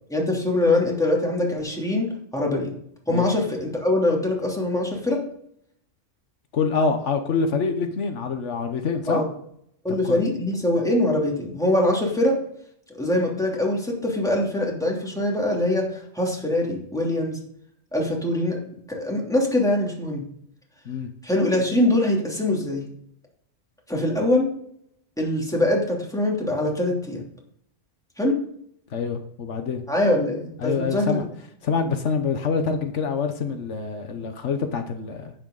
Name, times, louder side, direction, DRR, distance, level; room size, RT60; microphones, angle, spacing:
voice 1, 0.1-2.7 3.1-5.2 9.1-9.2 9.8-12.4 12.9-17.4 17.9-18.6 18.9-20.2 21.2-22.9 23.9-24.5 25.2-27.2 28.2-28.3 29.9-31.2, left 1 dB, 5° left, -2 dB, 3.0 m, -23 dB
voice 2, 6.5-9.2 9.9-10.2 20.8-21.1 28.9-29.8 30.6-31.3 31.6-35.3, left 5 dB, 80° left, 6 dB, 1.4 m, -26 dB
10.5 x 9.4 x 3.9 m, 0.69 s
omnidirectional pair, 1.2 m